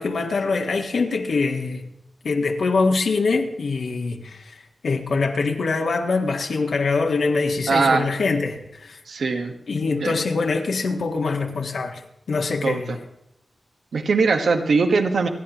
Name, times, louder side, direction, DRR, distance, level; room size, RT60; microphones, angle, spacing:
voice 1, 0.0-1.8 2.2-9.0 9.7-13.0, left 4 dB, 80° left, 1.5 m, -24 dB
voice 2, 7.7-8.1 9.1-9.5 9.9-10.1 12.6-12.8 13.9-15.3, right 4 dB, 80° right, 1.3 m, -20 dB
28.5 x 10.0 x 3.0 m
wide cardioid pair, 140°, 0 cm